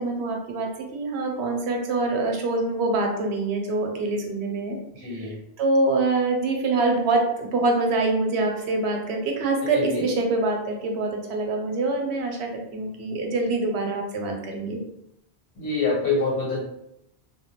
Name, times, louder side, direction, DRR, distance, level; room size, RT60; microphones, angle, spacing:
voice 1, 0.0-4.8 5.0-14.8, right 2 dB, 85° right, 2 dB, 0.8 m, -25 dB
voice 2, 5.0-5.3 9.6-10.1 15.6-16.6, left 3 dB, 85° left, -5 dB, 1.3 m, -26 dB
2.2 x 2.2 x 2.8 m, 0.79 s
omnidirectional pair, 1.1 m